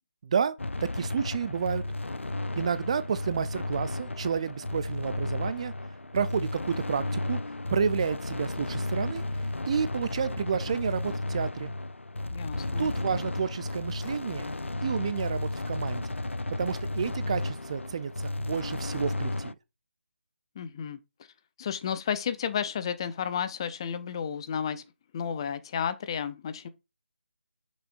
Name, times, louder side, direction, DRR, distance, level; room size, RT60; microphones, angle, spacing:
voice 1, 0.2-0.5 0.8-1.8 2.6-5.7 6.1-7.4 7.7-9.2 9.7-11.7 12.8-14.5 14.8-16.1 16.6-19.6, right 6 dB, 30° right, 0.5 m, -30 dB
sound 1, 0.6-19.5, left 2 dB, 85° left, 0.5 m, -33 dB
voice 2, 12.3-12.9 20.6-21.0 21.6-24.8 25.1-26.7, left 7 dB, 25° left, 0.6 m, -32 dB
6.8 x 6.2 x 2.5 m
figure-of-eight pair, 155°, 6 cm